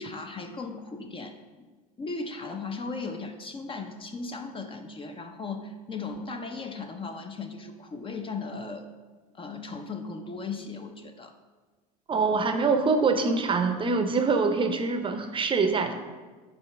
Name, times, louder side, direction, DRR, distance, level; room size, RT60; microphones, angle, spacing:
voice 1, 0.0-1.3 2.0-8.9 9.3-11.3, left 4 dB, 25° left, 6 dB, 0.7 m, -37 dB
voice 2, 12.1-15.9, right 4 dB, 25° right, 7 dB, 0.7 m, -24 dB
5.2 x 4.5 x 5.8 m, 1.3 s
hypercardioid pair, 90°, 20 cm